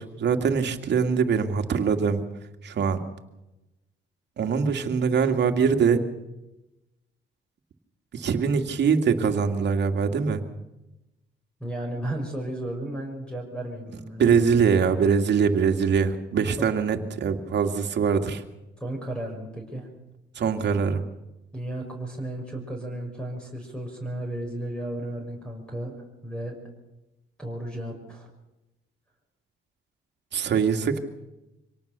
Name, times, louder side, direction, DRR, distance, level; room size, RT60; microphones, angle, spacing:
voice 1, 0.0-2.2 2.6-3.0 4.4-6.0 8.1-10.4 14.2-18.4 20.4-21.0 30.3-31.0, right 6 dB, 60° right, 5 dB, 2.3 m, -23 dB
voice 2, 11.6-14.2 18.8-19.9 21.5-26.0 26.2-26.6 27.4-28.3, right 1 dB, 5° left, 1 dB, 5.9 m, -34 dB
25.5 x 18.5 x 6.9 m, 0.98 s
cardioid pair, 90°, 20 cm